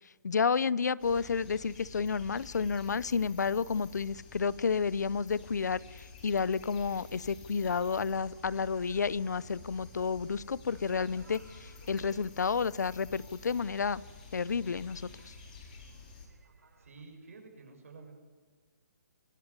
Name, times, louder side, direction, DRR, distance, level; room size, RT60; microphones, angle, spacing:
voice 1, 0.2-14.0 14.3-15.3, left 5 dB, 80° left, 21 dB, 0.7 m, -31 dB
sound 1, 1.0-16.3, left 4 dB, 30° left, 4.5 m, -51 dB
sound 2, 8.2-17.0, right 4 dB, 80° right, 5.7 m, -61 dB
voice 2, 16.8-18.2, right 4 dB, 55° right, 3 dB, 6.9 m, -51 dB
24.5 x 18.0 x 9.7 m, 1.5 s
hypercardioid pair, 175°, 9 cm